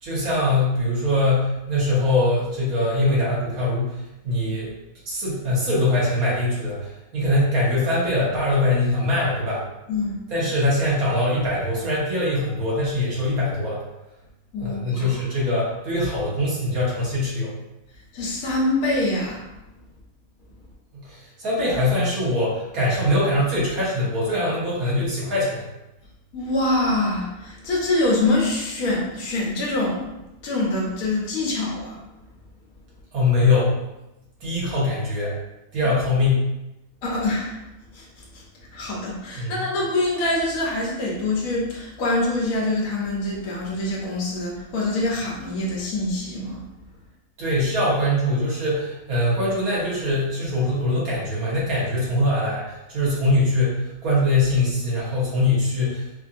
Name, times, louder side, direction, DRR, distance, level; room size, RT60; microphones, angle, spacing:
voice 1, 0.0-4.7 5.1-9.6 10.3-13.8 14.6-17.6 20.9-25.7 33.1-33.8 34.4-35.4 35.7-36.4 39.3-39.7 47.4-56.2, left 1 dB, 70° right, -7 dB, 1.8 m, -22 dB
voice 2, 14.5-15.1 18.1-19.4 26.3-30.1 30.4-32.0 37.0-37.5 37.9-38.0 38.3-38.4 38.7-46.6, left 2 dB, 70° left, -4 dB, 1.4 m, -25 dB
4.3 x 2.8 x 2.5 m, 0.94 s
omnidirectional pair, 1.6 m